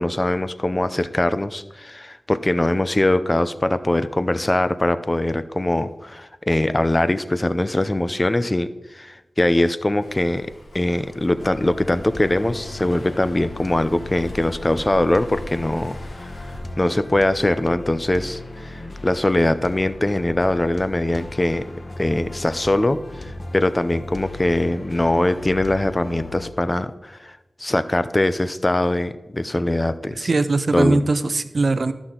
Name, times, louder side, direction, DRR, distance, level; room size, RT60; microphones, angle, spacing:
voice 1, 0.0-10.5 10.7-16.3 16.8-21.6 22.0-30.3 30.7-31.0, left 1 dB, 30° left, 13 dB, 0.6 m, -22 dB
Waves surf, 10.0-16.6, left 1 dB, 75° left, 3.2 m, -42 dB
sound 1, 11.3-26.5, left 2 dB, 50° left, 1.1 m, -37 dB
voice 2, 30.2-31.9, right 3 dB, 65° right, 12 dB, 0.6 m, -20 dB
13.5 x 6.1 x 3.8 m, 1.0 s
cardioid pair, 45°, 0 cm